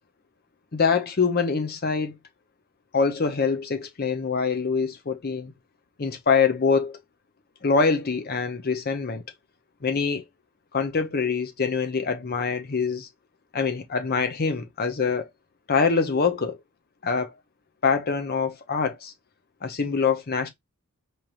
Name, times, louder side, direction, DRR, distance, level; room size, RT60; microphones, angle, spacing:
voice 1, 0.7-2.2 2.9-5.5 6.0-7.0 7.6-9.2 9.8-10.2 10.7-13.1 13.5-15.3 15.7-16.6 17.0-17.3 17.8-19.1 19.6-20.5, left 5 dB, 45° left, 0.7 m, -24 dB
4.5 x 3.2 x 2.5 m
head